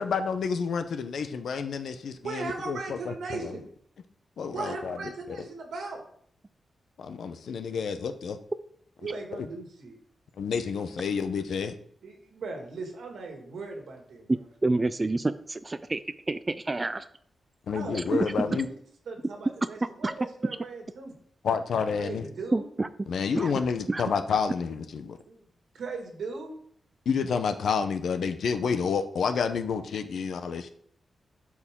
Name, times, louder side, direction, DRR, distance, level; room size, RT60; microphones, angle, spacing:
voice 1, 0.0-3.6 4.4-5.0 7.0-8.4 9.3-9.5 10.4-11.7 17.7-18.7 21.4-22.2 23.1-25.2 27.1-30.7, left 6 dB, 75° left, 9 dB, 0.7 m, -29 dB
voice 2, 2.2-3.6 4.5-6.0 9.0-10.0 12.0-14.4 17.7-18.8 19.1-21.2 22.0-22.7 25.3-25.4 25.7-26.5, right 3 dB, 90° right, 2 dB, 2.0 m, -38 dB
voice 3, 14.6-16.0 16.3-17.1 17.9-18.3 20.0-20.1 22.5-22.9 23.4-23.5 23.9-24.0, right 2 dB, 20° right, 12 dB, 0.3 m, -28 dB
12.5 x 4.8 x 3.7 m, 0.64 s
wide cardioid pair, 155°, 0 cm